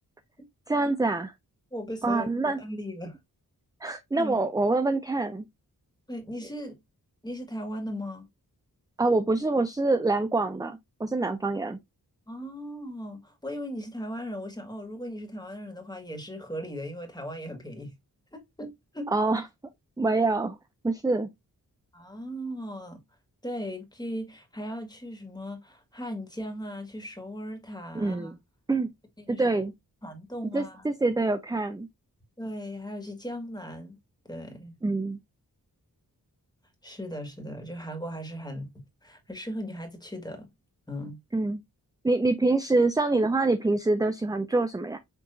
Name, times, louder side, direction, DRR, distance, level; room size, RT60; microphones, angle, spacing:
voice 1, 0.7-1.3 2.0-2.6 3.8-5.4 9.0-11.8 19.1-19.4 20.0-20.6 20.8-21.3 27.9-28.4 28.7-28.9 29.3-29.7 30.5-31.9 34.8-35.2 41.3-41.6 42.0-45.0, right 2 dB, 10° right, 0.4 m, -25 dB
voice 2, 1.7-3.2 4.2-4.4 6.1-6.8 7.2-8.3 12.3-17.9 18.3-19.1 21.9-23.0 23.4-28.3 29.2-29.4 30.0-30.9 32.4-34.0 34.3-34.7 36.8-40.5 40.9-41.2, equal, 10° left, 1.8 m, -37 dB
6.7 x 2.8 x 2.6 m
wide cardioid pair, 75°, 37 cm